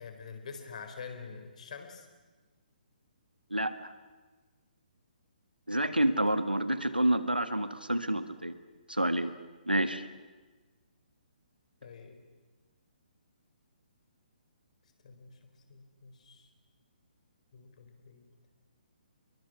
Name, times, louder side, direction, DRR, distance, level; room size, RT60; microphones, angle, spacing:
voice 1, 0.0-2.1 11.8-12.2 15.0-15.4 15.7-16.5 17.5-18.3, left 5 dB, 50° left, 6 dB, 3.9 m, -46 dB
voice 2, 3.5-3.9 5.7-8.5 8.9-9.3 9.7-10.0, right 1 dB, 90° right, 11 dB, 1.6 m, -28 dB
28.0 x 22.5 x 6.1 m, 1.3 s
figure-of-eight pair, 135°, 5 cm